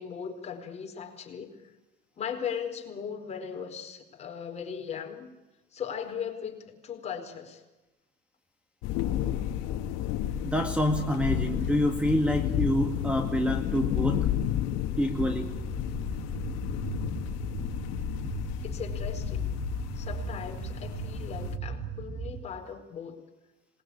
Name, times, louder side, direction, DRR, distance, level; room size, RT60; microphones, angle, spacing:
voice 1, 0.0-1.7 2.2-5.3 5.7-7.6 18.6-19.6 19.9-23.2, left 7 dB, 30° left, 3 dB, 4.5 m, -38 dB
sound 1, 8.8-21.6, left 11 dB, 75° left, 1.9 m, -32 dB
voice 2, 10.4-14.2 15.0-15.5, equal, 5° right, 6 dB, 1.9 m, -27 dB
sound 2, 15.3-22.4, right 7 dB, 50° right, 4.4 m, -38 dB
26.5 x 21.0 x 8.6 m, 1.1 s
cardioid pair, 130°, 21 cm